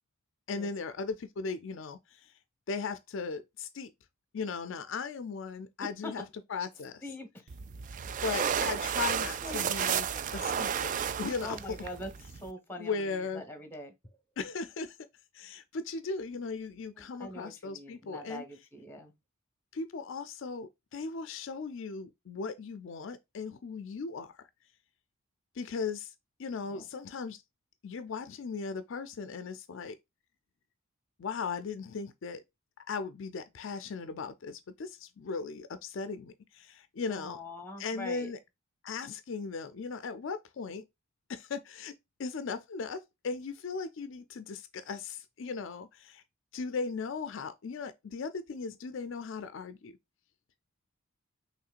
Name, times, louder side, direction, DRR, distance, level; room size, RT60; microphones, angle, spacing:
voice 1, 0.5-2.3 2.7-3.9 4.3-6.2 6.5-7.0 8.2-10.1 10.3-11.8 12.8-13.4 14.4-15.0 15.3-18.4 19.7-24.5 25.5-26.1 26.4-27.4 27.8-30.0 31.2-32.4 32.9-37.4 37.8-38.4 38.8-40.8 41.3-41.9 42.2-46.2 46.5-49.9, left 4 dB, 60° left, 0.4 m, -37 dB
sound 1, 7.5-12.5, right 8 dB, 40° right, 0.3 m, -32 dB
voice 2, 9.4-9.7 11.4-13.9 17.0-19.1 26.7-26.9 37.1-38.3, left 1 dB, 10° left, 1.1 m, -43 dB
5.7 x 3.1 x 2.4 m
head